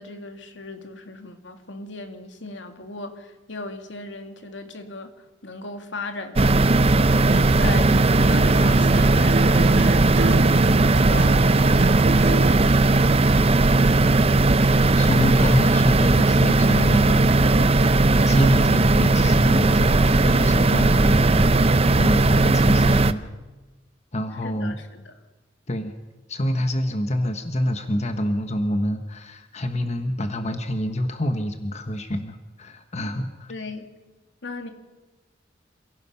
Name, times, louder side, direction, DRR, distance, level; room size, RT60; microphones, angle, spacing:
voice 1, 0.0-5.1 5.4-11.8 24.4-25.1 33.5-33.9 34.4-34.7, left 3 dB, 80° left, 6 dB, 2.4 m, -37 dB
sound 1, 6.4-23.1, right 2 dB, 35° right, 0.6 m, -17 dB
Acoustic guitar, 7.3-12.7, right 3 dB, 65° right, 0.8 m, -27 dB
voice 2, 14.7-17.5 18.2-23.3 24.1-24.8 25.7-25.9 26.3-33.5, equal, 35° left, 7 dB, 1.3 m, -26 dB
27.5 x 17.0 x 5.8 m, 1.2 s
head